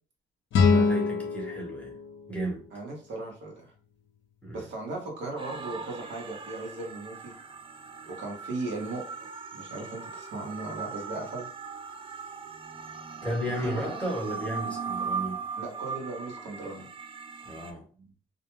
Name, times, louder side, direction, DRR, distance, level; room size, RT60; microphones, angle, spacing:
sound 1, 0.5-3.5, left 4 dB, 75° left, 0.6 m, -26 dB
voice 1, 0.6-2.0 2.3-2.6 4.4-4.6 13.2-15.4 17.4-18.1, right 1 dB, 5° left, 1.0 m, -34 dB
voice 2, 2.7-3.7 4.5-7.3 8.0-9.0 9.5-11.5 13.6-14.0 15.6-16.9, right 2 dB, 65° right, 1.0 m, -37 dB
sound 2, 5.4-17.7, right 5 dB, 25° right, 0.4 m, -39 dB
2.4 x 2.1 x 3.0 m
cardioid pair, 90°, 20 cm